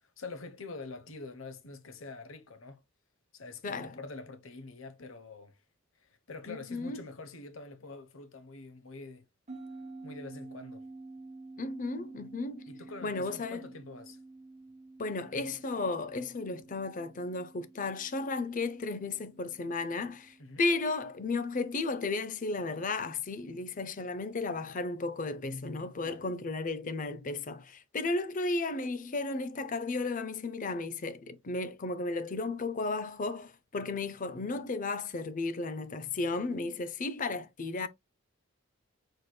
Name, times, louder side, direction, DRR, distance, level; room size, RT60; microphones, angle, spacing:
voice 1, 0.0-2.8 3.3-5.6 6.0-9.3 10.0-10.9 12.7-14.2 20.4-20.6 26.0-26.2, left 3 dB, 65° left, 1.0 m, -46 dB
voice 2, 3.6-3.9 6.5-7.0 11.6-12.7 13.0-13.6 15.0-37.9, left 3 dB, 40° left, 0.5 m, -34 dB
sound 1, 9.5-22.2, right 3 dB, 30° right, 0.9 m, -50 dB
4.7 x 4.4 x 2.2 m
head